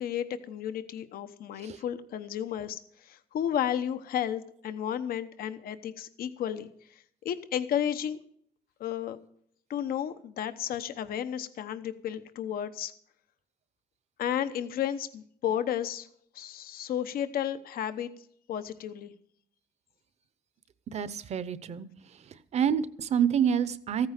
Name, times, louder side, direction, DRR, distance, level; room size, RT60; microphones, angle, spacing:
voice 1, 0.0-8.2 8.8-9.2 9.7-12.9 14.2-16.1 16.3-18.1 18.5-19.1, left 10 dB, 85° left, 11 dB, 1.0 m, -33 dB
voice 2, 20.9-21.9 22.5-24.1, right 8 dB, 50° right, 16 dB, 0.8 m, -27 dB
15.0 x 9.5 x 6.5 m, 0.64 s
cardioid pair, 165°, 15 cm